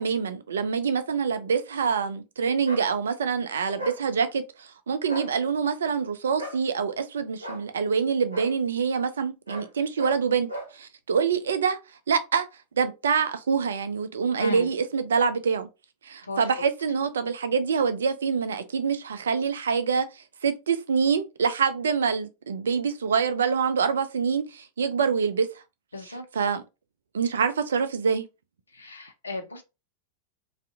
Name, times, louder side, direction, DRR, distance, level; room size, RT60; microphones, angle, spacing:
voice 1, 0.0-10.5 10.7-11.8 12.1-12.5 12.8-15.7 16.0-25.5 26.3-26.6 27.1-28.3, right 6 dB, 65° right, 0.3 m, -25 dB
sound 1, 2.6-2.9 3.8-4.0 5.0-5.3 6.4-6.6 7.4-7.6 8.3-8.5 9.5-9.7 10.0-10.2 10.5-10.7, equal, 85° right, 0.8 m, -36 dB
voice 2, 14.4-14.7 16.2-16.5 25.9-26.3 28.7-29.6, left 2 dB, 75° left, 0.5 m, -35 dB
2.5 x 2.5 x 2.3 m
figure-of-eight pair, 90°, 0 cm